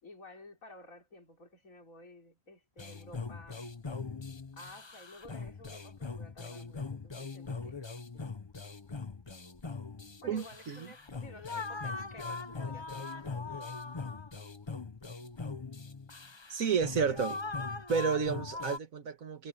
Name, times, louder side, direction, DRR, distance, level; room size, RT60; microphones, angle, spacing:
voice 1, 0.0-3.6 4.5-8.2 10.2-13.7 17.0-17.4, left 1 dB, 80° left, 4.6 m, -53 dB
sound 1, 2.8-18.8, left 4 dB, 25° left, 0.9 m, -41 dB
voice 2, 10.2-10.9 16.5-17.3 17.9-19.5, right 6 dB, 90° right, 1.9 m, -31 dB
omnidirectional pair, 1.4 m